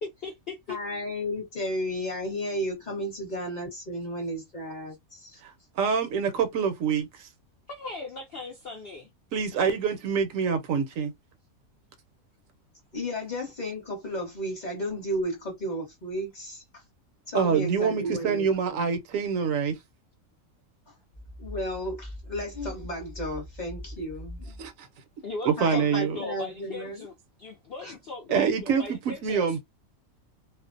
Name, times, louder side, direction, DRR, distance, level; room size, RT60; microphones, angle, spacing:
voice 1, 0.0-0.8 5.3-5.4 7.7-9.1 9.5-9.7 25.2-29.6, left 3 dB, 65° left, 0.6 m, -38 dB
voice 2, 0.7-5.4 12.9-16.6 17.3-18.9 21.4-24.6 25.6-27.0 27.8-28.0, equal, 35° left, 0.9 m, -33 dB
voice 3, 5.8-7.3 9.3-11.1 17.3-19.7 24.6-24.9 25.5-26.2 28.3-29.6, right 6 dB, 70° right, 0.9 m, -26 dB
sound 1, 21.1-24.7, equal, 5° right, 0.6 m, -42 dB
2.4 x 2.1 x 2.5 m
omnidirectional pair, 1.5 m